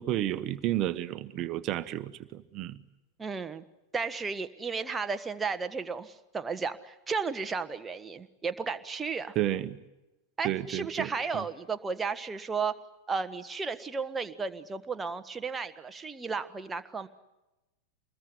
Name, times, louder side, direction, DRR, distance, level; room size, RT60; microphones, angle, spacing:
voice 1, 0.0-2.8 9.3-9.8 10.4-11.4, right 13 dB, 35° right, 13 dB, 1.3 m, -31 dB
voice 2, 3.2-3.6 3.9-9.3 10.4-12.8 13.1-17.1, right 5 dB, 15° right, 9 dB, 1.4 m, -34 dB
26.0 x 21.0 x 9.7 m, 1.0 s
figure-of-eight pair, 90°, 0 cm